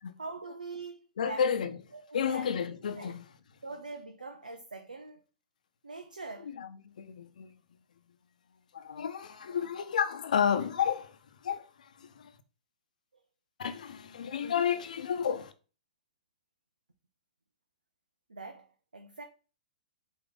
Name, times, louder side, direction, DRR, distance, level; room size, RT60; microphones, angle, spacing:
voice 1, 0.2-1.4 1.9-2.5 3.0-3.1 3.6-5.2 5.8-6.5 18.3-19.2, right 3 dB, 90° right, 0.7 m, -43 dB
voice 2, 1.2-1.8 2.1-3.2 6.4-7.5 8.7-12.3 13.6-15.5, left 7 dB, 70° left, 0.8 m, -31 dB
8.1 x 3.0 x 3.9 m
hypercardioid pair, 115°, 4 cm